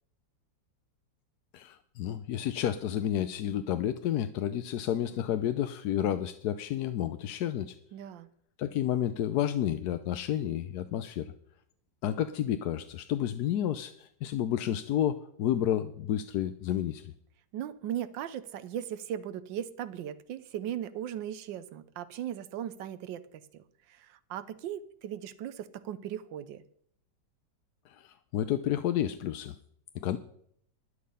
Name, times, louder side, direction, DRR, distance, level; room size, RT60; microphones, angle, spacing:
voice 1, 1.5-7.8 8.6-11.3 12.0-17.1 27.9-29.6 29.9-30.2, left 11 dB, 70° left, 10 dB, 1.1 m, -30 dB
voice 2, 7.9-8.3 17.5-23.4 23.9-26.6, right 10 dB, 90° right, 13 dB, 1.4 m, -38 dB
11.5 x 10.5 x 5.5 m, 0.66 s
omnidirectional pair, 1.9 m